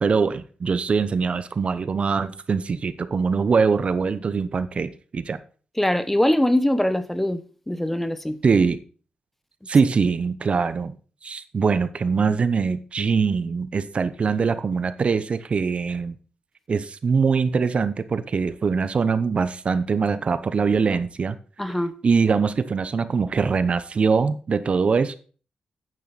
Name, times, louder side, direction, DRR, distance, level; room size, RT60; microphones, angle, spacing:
voice 1, 0.0-5.4 8.4-8.8 9.7-10.9 11.2-16.2 16.7-21.4 22.0-25.2, right 5 dB, 45° right, 0.8 m, -22 dB
voice 2, 5.8-7.4 7.7-8.4 21.6-21.9, left 1 dB, 10° left, 0.9 m, -22 dB
9.2 x 9.0 x 4.1 m
cardioid pair, 90°, 3 cm